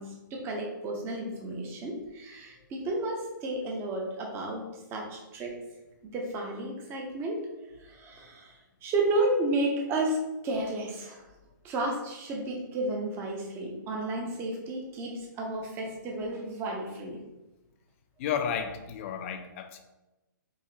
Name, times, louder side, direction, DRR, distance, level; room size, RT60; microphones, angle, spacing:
voice 1, 0.0-4.6 4.9-5.6 6.1-7.5 7.8-8.5 8.8-11.2 11.6-17.2, right 2 dB, 20° right, 1 dB, 0.7 m, -32 dB
voice 2, 18.2-19.8, left 7 dB, 40° left, 7 dB, 0.4 m, -32 dB
4.8 x 2.9 x 2.8 m, 1.0 s
hypercardioid pair, 140°, 11 cm